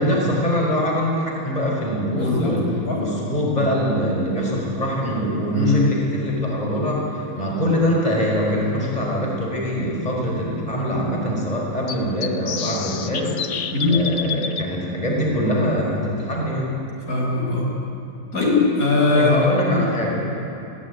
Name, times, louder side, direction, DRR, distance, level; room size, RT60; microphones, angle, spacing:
voice 1, 0.0-2.6 2.9-13.4 13.9-16.7 19.1-20.2, equal, 25° left, -2 dB, 5.0 m, -23 dB
voice 2, 2.1-3.0 5.5-5.9 13.7-14.0 17.1-17.7 18.3-19.4 19.7-19.8, left 3 dB, 85° left, -2 dB, 5.8 m, -20 dB
sound 1, 6.3-6.4 8.4-8.5 9.0-9.1 9.3-9.4 11.9-14.6, left 7 dB, 70° left, 1.4 m, -29 dB
21.5 x 17.0 x 9.5 m, 2.9 s
omnidirectional pair, 1.5 m